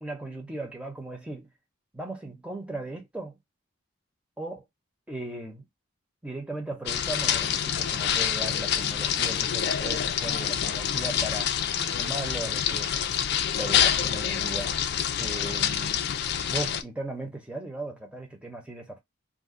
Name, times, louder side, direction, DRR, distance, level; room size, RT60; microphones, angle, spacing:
voice 1, 0.0-1.5 1.9-3.4 4.4-4.7 5.1-5.7 6.2-11.5 11.8-13.0 13.5-14.7 15.2-16.1 16.5-19.0, right 2 dB, 5° right, 0.7 m, -37 dB
sound 1, 6.9-16.8, left 9 dB, 50° left, 0.3 m, -27 dB
2.5 x 2.2 x 3.6 m
head